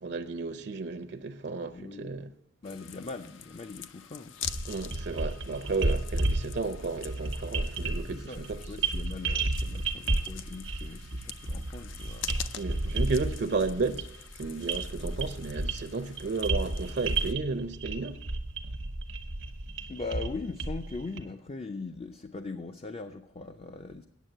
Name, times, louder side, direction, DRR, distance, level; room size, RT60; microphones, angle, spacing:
voice 1, 0.0-2.3 4.7-8.6 12.6-18.2, right 4 dB, 60° right, 0.7 m, -33 dB
voice 2, 1.7-2.3 2.6-4.4 8.1-12.5 12.8-13.0 19.9-24.1, left 3 dB, 30° left, 0.4 m, -40 dB
sound 1, 2.6-17.3, left 9 dB, 80° left, 0.6 m, -45 dB
sound 2, 4.4-21.2, right 2 dB, 80° right, 1.0 m, -32 dB
9.4 x 7.2 x 8.7 m
head